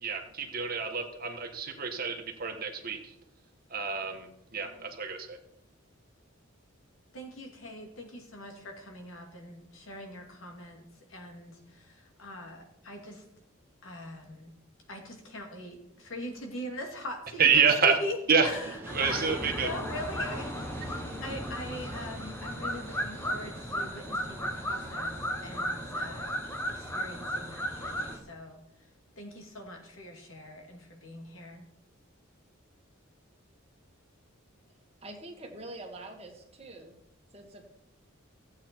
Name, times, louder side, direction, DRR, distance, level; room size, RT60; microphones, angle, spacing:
voice 1, 0.0-3.1 3.7-5.4 17.4-17.9 18.3-18.5 18.9-19.7, right 6 dB, 45° right, 4 dB, 1.5 m, -27 dB
voice 2, 7.1-10.8 11.1-13.2 13.8-14.5 14.9-18.2 18.4-18.7 19.0-20.7 21.2-26.3 26.7-28.6 29.2-31.6, left 1 dB, 75° left, 2 dB, 2.5 m, -41 dB
sound 1, 18.4-28.2, right 1 dB, 10° right, 1.9 m, -47 dB
sound 2, 18.9-28.2, equal, 10° left, 1.3 m, -35 dB
voice 3, 35.0-36.9 37.3-37.6, right 2 dB, 30° right, 2 dB, 1.8 m, -45 dB
15.5 x 8.3 x 4.6 m, 0.80 s
head